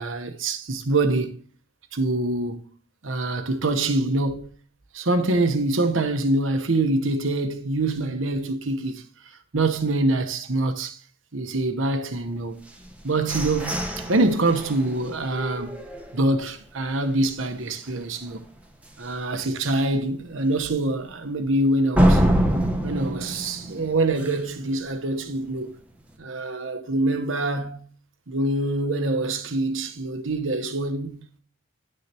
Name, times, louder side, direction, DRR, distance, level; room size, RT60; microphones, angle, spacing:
voice 1, 0.0-1.4 1.9-2.7 3.0-4.5 4.9-9.0 9.5-11.0 11.3-12.6 13.0-15.8 16.1-18.4 19.0-22.2 22.8-25.7 26.2-27.8 28.3-31.2, right 2 dB, 90° right, 1.1 m, -25 dB
sound 1, 12.7-16.6 17.0-17.1 17.5-17.9 18.3-18.4 18.9-19.0 21.9-24.6, equal, 5° right, 1.0 m, -25 dB
10.0 x 6.5 x 2.9 m
head